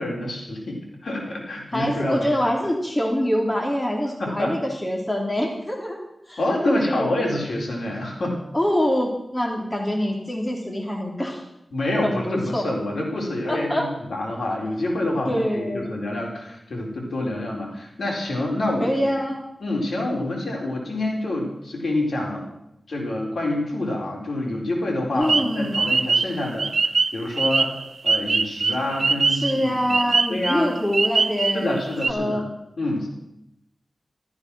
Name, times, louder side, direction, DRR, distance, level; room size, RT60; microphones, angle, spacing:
voice 1, 0.0-2.5 4.2-4.5 6.4-8.4 11.7-19.2 19.6-22.5 22.9-27.8 28.0-30.7 31.5-32.5 32.8-33.1, left 1 dB, 75° left, -1 dB, 4.2 m, -27 dB
voice 2, 1.7-6.0 6.3-6.4 6.6-7.1 8.5-11.4 12.0-12.7 13.5-13.9 15.3-15.9 18.8-19.4 25.1-25.9 29.3-31.8 32.1-32.4, equal, 20° left, 1 dB, 3.1 m, -25 dB
sound 1, 25.2-31.8 32.0-32.1, right 4 dB, 70° right, 0.6 m, -22 dB
14.0 x 13.0 x 6.2 m, 0.82 s
wide cardioid pair, 70°, 0 cm